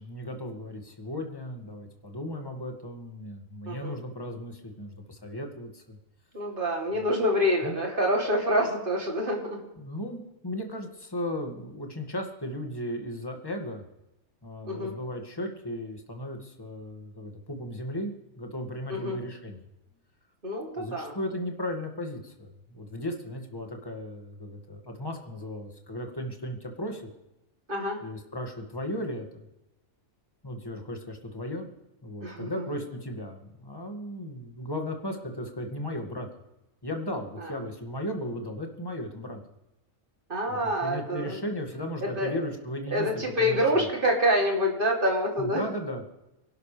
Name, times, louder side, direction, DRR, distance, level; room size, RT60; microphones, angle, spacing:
voice 1, 0.0-6.0 7.6-7.8 9.8-13.9 14.4-19.6 20.8-27.1 28.0-29.4 30.4-31.7 32.0-36.3 36.8-39.4 40.5-43.8 45.4-46.1, left 1 dB, 15° left, 2 dB, 2.1 m, -36 dB
voice 2, 3.7-4.0 6.3-9.6 14.6-14.9 18.9-19.1 20.4-21.1 27.7-28.0 32.2-32.6 37.4-37.5 40.3-41.4 42.2-42.3 42.9-45.6, equal, 40° right, 0 dB, 3.2 m, -26 dB
25.0 x 12.0 x 3.4 m, 0.93 s
omnidirectional pair, 1.5 m